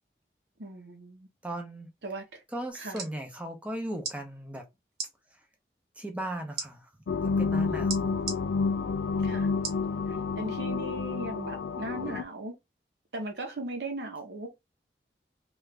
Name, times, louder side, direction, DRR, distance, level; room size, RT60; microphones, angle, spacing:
voice 1, 0.6-1.3 2.0-2.4 2.7-3.0 7.7-8.2 9.2-9.5 10.1-12.6 13.1-14.5, right 2 dB, 85° right, 0.8 m, -38 dB
voice 2, 1.4-1.9 2.5-4.6 6.0-6.9 7.4-8.1, right 1 dB, 10° right, 0.7 m, -37 dB
sound 1, 2.7-3.1 4.0-4.2 4.9-5.1 6.6-6.7 7.9-8.4 9.6-9.9 10.4-10.5, right 5 dB, 65° right, 1.2 m, -35 dB
sound 2, 7.1-12.2, left 4 dB, 75° left, 0.3 m, -29 dB
3.1 x 2.4 x 3.2 m
head